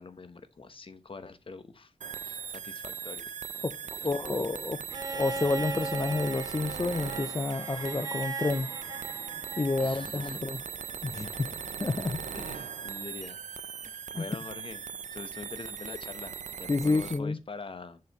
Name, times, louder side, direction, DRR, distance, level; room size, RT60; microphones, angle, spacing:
voice 1, 0.0-1.9 2.2-3.3 4.0-4.2 9.8-10.7 11.1-11.6 12.3-14.8 15.1-18.0, left 4 dB, 45° left, 0.9 m, -44 dB
sound 1, 2.0-17.2, right 7 dB, 80° right, 0.5 m, -39 dB
voice 2, 4.0-4.8 5.1-8.7 9.6-10.6 11.0-11.5 11.8-12.2 14.2-14.3 16.7-17.4, left 3 dB, 25° left, 0.5 m, -29 dB
Bowed string instrument, 4.9-9.9 11.4-11.5, right 3 dB, 30° right, 0.5 m, -38 dB
sound 2, 5.2-11.3, right 4 dB, 65° right, 1.8 m, -59 dB
6.9 x 6.7 x 2.9 m
wide cardioid pair, 100°, 12 cm